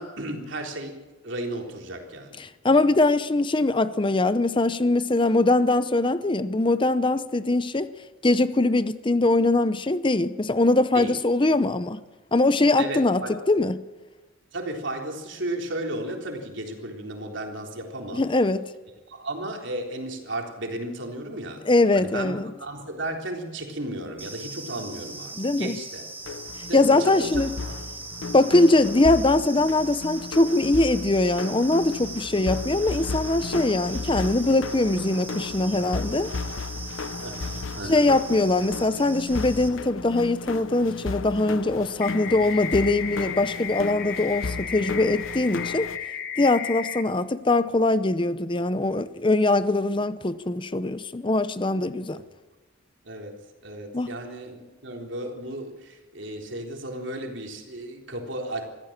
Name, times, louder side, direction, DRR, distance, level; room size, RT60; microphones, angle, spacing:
voice 1, 0.0-2.4 10.9-11.2 12.8-13.4 14.5-18.3 19.1-21.7 21.9-26.0 26.7-27.4 37.2-38.1 52.1-52.3 53.1-53.3 53.6-58.6, right 1 dB, 65° right, 3.7 m, -34 dB
voice 2, 2.4-7.9 8.2-12.0 12.3-13.2 13.5-13.8 18.1-18.6 21.7-22.5 25.4-25.7 26.7-27.5 28.3-36.3 37.9-45.9 46.4-52.2 53.9-54.1, left 2 dB, 25° left, 0.7 m, -22 dB
sound 1, 24.2-39.7, right 3 dB, 10° right, 2.2 m, -40 dB
sound 2, 26.2-46.0, left 3 dB, 80° left, 0.8 m, -35 dB
sound 3, 42.0-47.0, left 9 dB, 50° left, 1.8 m, -34 dB
24.0 x 15.0 x 7.4 m
head